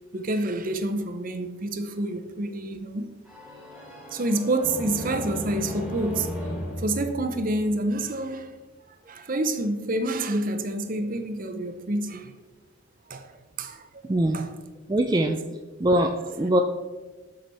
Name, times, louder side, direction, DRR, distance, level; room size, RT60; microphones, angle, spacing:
voice 1, 0.1-3.1 4.1-6.3 6.8-8.5 9.1-12.3 13.1-14.0 14.3-14.5, right 2 dB, 40° right, 0.7 m, -28 dB
sound 1, 3.3-8.0, left 1 dB, 5° right, 1.8 m, -36 dB
voice 2, 14.0-14.4 14.9-15.4 15.8-16.6, right 1 dB, 20° right, 0.4 m, -22 dB
12.0 x 5.2 x 4.1 m
head